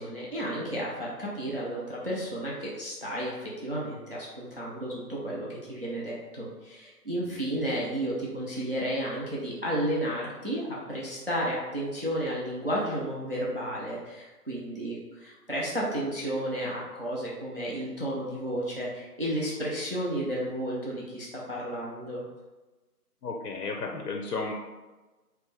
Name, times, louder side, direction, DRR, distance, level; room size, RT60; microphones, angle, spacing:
voice 1, 0.0-22.2, right 1 dB, 40° right, -5 dB, 0.5 m, -32 dB
voice 2, 23.2-24.5, left 3 dB, 80° left, 1 dB, 0.6 m, -33 dB
3.1 x 2.6 x 3.2 m, 1.2 s
figure-of-eight pair, 165°, 47 cm